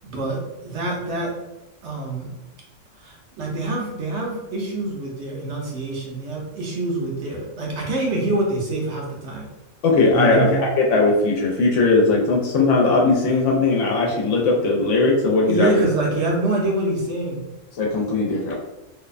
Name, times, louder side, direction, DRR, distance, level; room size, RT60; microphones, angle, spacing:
voice 1, 0.0-1.3 1.8-2.3 3.0-9.5 10.1-10.6 15.5-17.4, right 2 dB, 65° right, -2 dB, 0.9 m, -25 dB
voice 2, 9.8-15.7 17.8-18.5, left 3 dB, 75° left, -1 dB, 0.9 m, -19 dB
2.6 x 2.1 x 2.4 m, 1.0 s
omnidirectional pair, 1.3 m